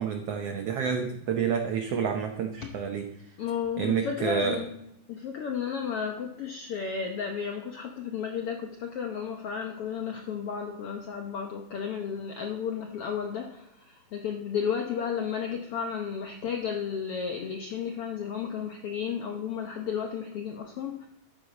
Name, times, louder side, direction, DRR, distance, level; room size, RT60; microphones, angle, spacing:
voice 1, 0.0-3.1 3.8-4.6, right 7 dB, 90° right, 5 dB, 1.3 m, -29 dB
voice 2, 3.4-4.7 5.1-21.1, left 7 dB, 75° left, 3 dB, 1.3 m, -33 dB
13.0 x 9.7 x 4.0 m, 0.85 s
omnidirectional pair, 3.8 m